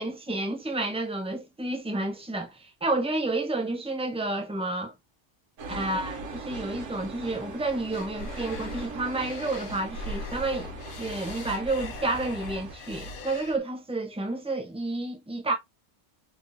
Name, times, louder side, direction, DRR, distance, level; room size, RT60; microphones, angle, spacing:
voice 1, 0.0-4.9 5.7-15.5, right 2 dB, 10° right, 0.3 m, -30 dB
sound 1, 5.6-12.8, right 3 dB, 85° right, 1.1 m, -40 dB
sound 2, 7.9-13.6, left 2 dB, 80° left, 1.0 m, -40 dB
3.5 x 2.0 x 2.5 m
omnidirectional pair, 1.3 m